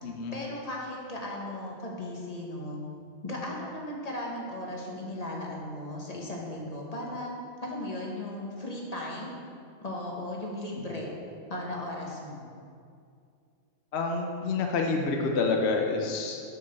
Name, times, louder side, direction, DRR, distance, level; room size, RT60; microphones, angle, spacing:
voice 1, 0.0-2.8 3.2-7.3 7.6-9.3 9.8-11.1 11.5-12.5, left 1 dB, 30° left, -2 dB, 1.5 m, -36 dB
voice 2, 13.9-16.4, left 4 dB, 55° left, 2 dB, 1.0 m, -28 dB
7.0 x 6.4 x 6.6 m, 2.4 s
omnidirectional pair, 1.4 m